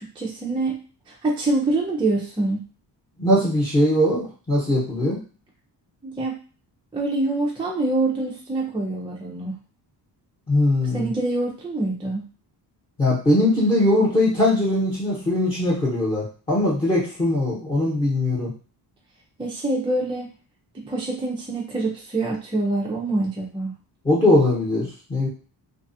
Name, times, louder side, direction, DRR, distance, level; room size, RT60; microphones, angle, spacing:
voice 1, 0.0-2.6 6.0-6.4 6.9-9.5 10.8-12.2 19.4-20.3 20.7-23.7, right 2 dB, 15° right, -3 dB, 0.3 m, -25 dB
voice 2, 3.2-5.2 10.5-11.1 13.0-18.5 24.0-25.3, left 1 dB, 15° left, -9 dB, 0.9 m, -20 dB
2.4 x 2.3 x 2.5 m, 0.37 s
cardioid pair, 145°, 41 cm